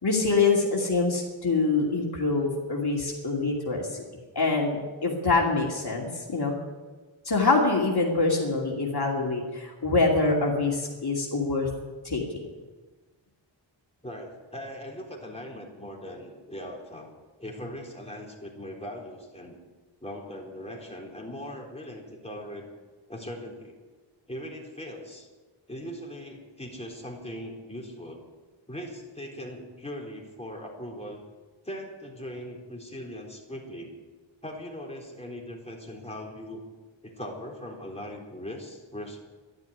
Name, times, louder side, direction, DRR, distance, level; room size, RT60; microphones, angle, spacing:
voice 1, 0.0-4.0 4.3-6.6 7.2-11.7 12.0-12.2, left 3 dB, 55° left, -2 dB, 2.7 m, -25 dB
voice 2, 14.0-17.1 17.4-19.6 20.0-22.7 23.1-23.8 24.3-25.3 25.7-28.2 28.7-31.2 31.6-33.9 34.4-36.6 37.0-39.2, equal, 15° left, -2 dB, 4.1 m, -40 dB
12.0 x 11.5 x 9.8 m, 1.3 s
wide cardioid pair, 65°, 47 cm